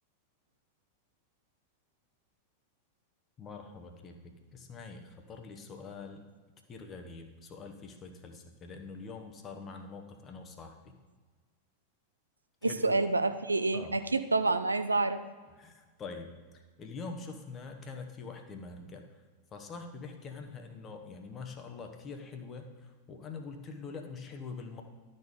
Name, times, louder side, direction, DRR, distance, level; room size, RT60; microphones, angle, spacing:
voice 1, 3.4-4.1 4.5-6.2 6.7-10.9 12.6-13.0 13.7-14.0 15.6-15.7 16.0-16.3 16.8-19.0 19.5-22.7 23.1-24.8, left 4 dB, 25° left, 5 dB, 1.0 m, -44 dB
voice 2, 12.6-15.2, right 3 dB, 80° right, 10 dB, 0.4 m, -28 dB
12.0 x 4.4 x 5.0 m, 1.4 s
figure-of-eight pair, 90°, 0 cm